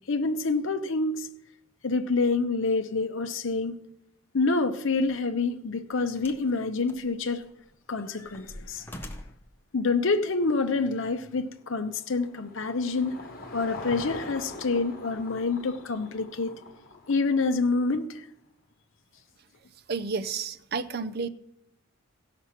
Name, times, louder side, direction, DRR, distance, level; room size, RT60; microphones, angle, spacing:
voice 1, 0.1-1.3 1.8-3.8 4.3-7.4 7.9-8.9 9.7-13.2 13.5-16.6 17.1-18.0, left 3 dB, 60° left, 0.7 m, -27 dB
sound 1, 5.0-5.2 6.2-6.5 6.9-7.6 8.0-9.5 10.4-10.5, left 1 dB, 10° left, 0.7 m, -44 dB
Car passing by / Engine, 11.3-17.8, left 2 dB, 45° left, 1.4 m, -43 dB
voice 2, 19.9-21.3, right 5 dB, 45° right, 0.5 m, -31 dB
16.0 x 5.9 x 5.8 m
head